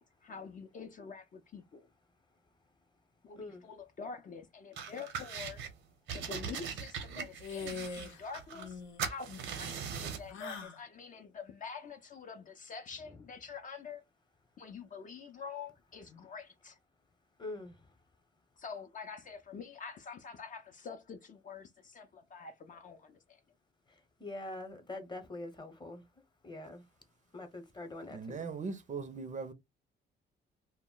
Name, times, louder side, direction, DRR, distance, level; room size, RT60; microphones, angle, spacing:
voice 1, 0.0-1.9 3.2-5.7 6.1-14.0 14.6-16.8 18.6-23.4, left 5 dB, 40° left, 0.5 m, -46 dB
voice 2, 3.4-3.7 17.4-17.9 23.9-26.1 26.4-26.9 27.3-28.5, left 2 dB, 20° left, 0.8 m, -44 dB
sound 1, 4.8-5.7 6.1-8.7 9.0-10.3, right 7 dB, 75° right, 0.7 m, -40 dB
sound 2, 7.4-8.2 8.5-9.1 10.3-10.8, left 5 dB, 90° left, 0.7 m, -42 dB
voice 3, 28.1-29.5, right 4 dB, 40° right, 0.5 m, -39 dB
2.1 x 2.1 x 3.7 m
cardioid pair, 90°, 20 cm